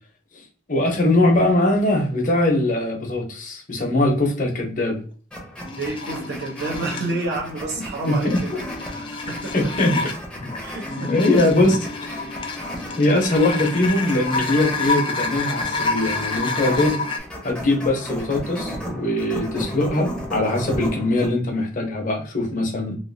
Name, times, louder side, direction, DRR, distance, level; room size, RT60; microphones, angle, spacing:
voice 1, 0.7-5.0 8.1-8.4 9.5-9.9 11.1-11.8 13.0-17.0 17.4-23.0, left 1 dB, 45° left, 1 dB, 0.9 m, -21 dB
sound 1, 5.3-21.3, equal, 5° left, 0.8 m, -35 dB
sound 2, 5.6-7.2 7.9-17.2, left 3 dB, 30° left, 0.4 m, -28 dB
voice 2, 5.8-8.5 8.8-9.5 10.6-11.1, right 2 dB, 65° right, -1 dB, 0.8 m, -29 dB
3.1 x 2.6 x 2.7 m, 0.40 s
head